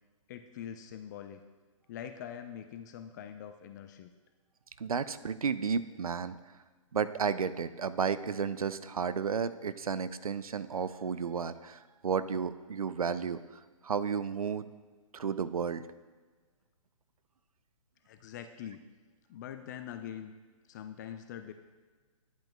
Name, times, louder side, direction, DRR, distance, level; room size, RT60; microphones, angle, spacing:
voice 1, 0.3-1.4 1.9-4.1 18.1-18.8 19.3-20.3 20.7-21.5, left 9 dB, 30° left, 8 dB, 0.4 m, -43 dB
voice 2, 4.8-6.3 6.9-13.4 13.8-14.7 15.1-15.9, right 6 dB, 90° right, 14 dB, 0.4 m, -32 dB
11.5 x 8.0 x 2.2 m, 1.4 s
figure-of-eight pair, 130°, 18 cm